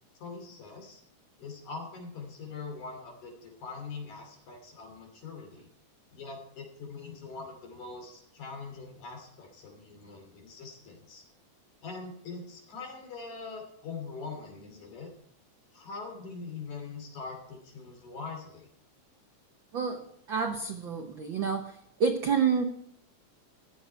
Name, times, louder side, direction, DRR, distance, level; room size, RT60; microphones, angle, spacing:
voice 1, 0.2-1.0 1.4-5.7 6.1-11.2 11.8-15.1 15.7-18.7, left 4 dB, 65° left, 2 dB, 4.2 m, -42 dB
voice 2, 20.3-21.7 22.0-22.6, right 6 dB, 75° right, 4 dB, 1.1 m, -28 dB
15.0 x 11.0 x 4.6 m, 0.68 s
omnidirectional pair, 3.7 m